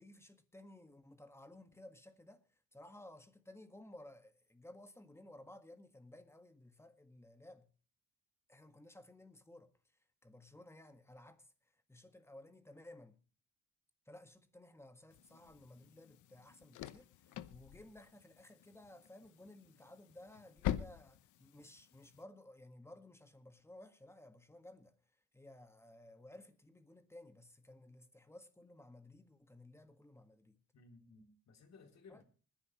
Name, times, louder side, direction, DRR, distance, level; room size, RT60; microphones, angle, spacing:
voice 1, 0.0-7.7 8.5-9.7 10.2-13.2 14.1-25.0 25.3-30.6 32.1-32.2, left 1 dB, 10° left, 1.8 m, -57 dB
sound 1, 15.1-22.2, left 11 dB, 85° left, 0.9 m, -46 dB
voice 2, 30.7-32.2, left 4 dB, 60° left, 3.4 m, -59 dB
25.5 x 10.5 x 3.2 m
cardioid pair, 90°, 30 cm